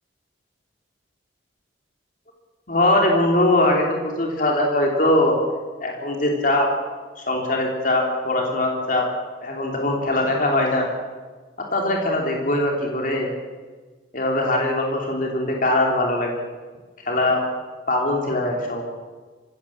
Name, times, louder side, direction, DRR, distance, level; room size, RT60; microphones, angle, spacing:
voice 1, 2.7-5.4 5.8-6.7 7.2-9.0 9.4-10.9 11.7-13.3 14.1-16.4 17.0-17.4 17.9-18.8, left 1 dB, 45° left, 0 dB, 3.2 m, -21 dB
25.5 x 16.0 x 7.3 m, 1.4 s
head